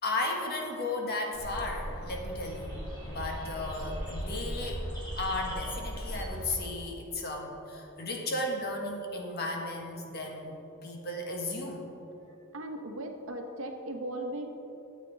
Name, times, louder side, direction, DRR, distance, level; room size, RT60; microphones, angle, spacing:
voice 1, 0.0-2.8 3.0-4.9 5.2-11.8, left 2 dB, 50° left, 1 dB, 1.4 m, -35 dB
sound 1, 1.3-6.5, equal, 20° left, 2.4 m, -38 dB
voice 2, 12.5-14.5, right 1 dB, 65° right, 4 dB, 1.0 m, -37 dB
13.0 x 8.1 x 4.0 m, 3.0 s
head